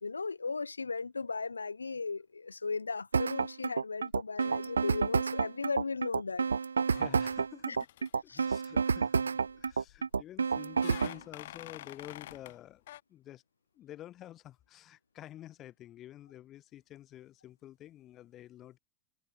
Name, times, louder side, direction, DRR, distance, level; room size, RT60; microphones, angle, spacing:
voice 1, 0.0-6.5 8.3-8.5, left 4 dB, 75° left, 1.5 m, -36 dB
sound 1, 3.1-11.2, right 5 dB, 75° right, 0.5 m, -30 dB
sound 2, 6.9-7.5 7.7-8.1 9.5-10.0 10.8-12.6 12.9-13.0, left 14 dB, 55° left, 1.1 m, -48 dB
voice 2, 6.9-7.9 8.2-12.8 13.1-13.4 13.7-18.8, left 13 dB, 30° left, 4.1 m, -49 dB
figure-of-eight pair, 90°, 0 cm